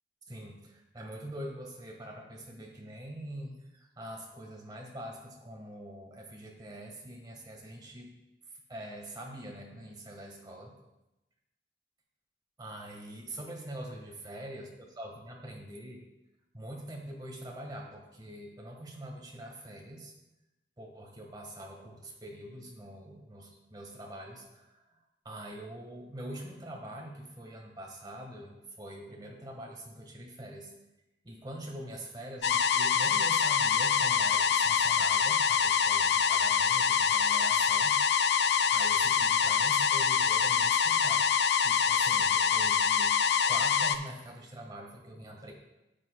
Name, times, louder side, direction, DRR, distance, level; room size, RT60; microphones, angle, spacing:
voice 1, 0.3-8.1 8.7-10.7 12.6-14.7 15.0-16.0 16.5-20.1 20.8-24.8 25.2-30.7 31.2-37.9 38.5-41.2 41.6-43.2 43.5-45.5, right 1 dB, 25° right, 0 dB, 1.5 m, -44 dB
sound 1, 32.4-43.9, left 7 dB, 75° left, 0.4 m, -25 dB
12.0 x 8.3 x 2.2 m, 0.96 s
head